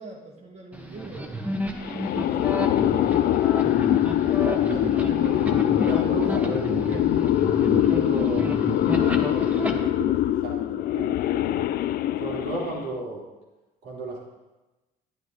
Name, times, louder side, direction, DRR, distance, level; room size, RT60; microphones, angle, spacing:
voice 1, 0.0-1.5 2.1-3.5, right 3 dB, 40° right, 0 dB, 2.1 m, -43 dB
sound 1, 0.7-9.7, equal, 10° right, 1.1 m, -31 dB
sound 2, 1.8-13.0, left 13 dB, 65° left, 0.4 m, -23 dB
voice 2, 4.4-5.6 5.8-7.1 7.7-10.1 10.4-11.6 12.2-13.2 13.8-14.2, right 3 dB, 70° right, -3 dB, 3.1 m, -34 dB
10.0 x 10.0 x 4.0 m, 1.1 s
cardioid pair, 110°, 17 cm